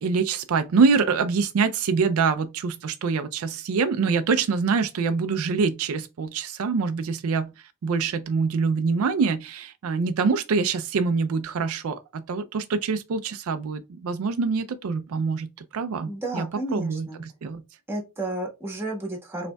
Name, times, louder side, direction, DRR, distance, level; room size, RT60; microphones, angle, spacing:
voice 1, 0.0-7.5 7.8-17.6, right 5 dB, 70° right, 0.4 m, -25 dB
voice 2, 16.0-17.2 17.9-19.5, right 1 dB, 10° right, 1.3 m, -32 dB
5.1 x 3.3 x 2.2 m
head